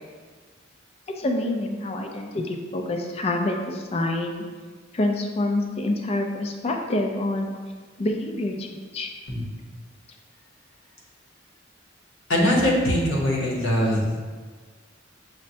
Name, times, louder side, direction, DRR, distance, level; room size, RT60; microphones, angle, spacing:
voice 1, 1.2-4.4 4.9-7.5 8.0-9.1, left 2 dB, 30° left, 3 dB, 0.4 m, -27 dB
voice 2, 12.3-14.0, equal, 85° left, -3 dB, 0.9 m, -21 dB
6.1 x 2.1 x 2.7 m, 1.5 s
head